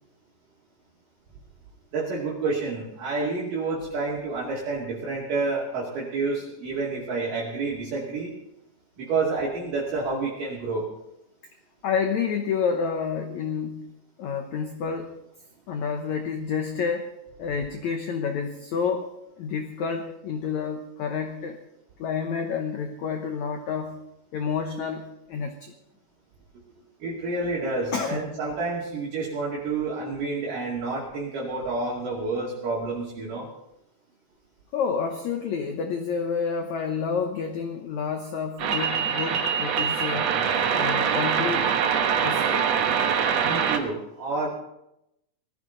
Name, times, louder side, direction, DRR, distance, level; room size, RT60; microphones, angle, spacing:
voice 1, 1.9-8.3 9.0-10.9 27.0-33.5 43.4-44.5, right 3 dB, 55° right, -5 dB, 3.7 m, -29 dB
voice 2, 11.8-15.2 15.7-17.1 17.4-19.1 19.4-21.6 22.0-24.0 24.3-25.7 27.9-28.4 34.7-40.3 40.7-41.7 42.2-42.7, left 6 dB, 85° left, 5 dB, 1.6 m, -29 dB
sound 1, 38.6-43.8, right 7 dB, 75° right, 1.5 m, -24 dB
20.0 x 14.5 x 3.9 m, 0.85 s
omnidirectional pair, 4.8 m